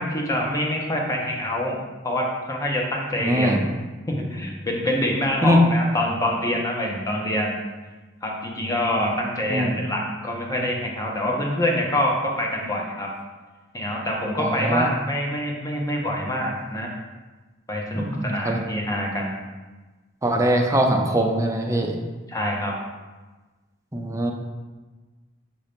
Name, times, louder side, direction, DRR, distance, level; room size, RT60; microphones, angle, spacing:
voice 1, 0.0-1.8 2.0-3.6 4.1-7.6 8.2-13.1 13.7-16.9 17.7-19.3 22.3-22.8, left 1 dB, 20° left, -1 dB, 0.9 m, -25 dB
voice 2, 3.2-3.6 5.4-5.6 9.5-9.8 14.4-14.9 17.9-18.6 20.2-22.0 23.9-24.3, equal, 15° right, 2 dB, 0.6 m, -22 dB
6.6 x 2.9 x 5.1 m, 1.3 s
head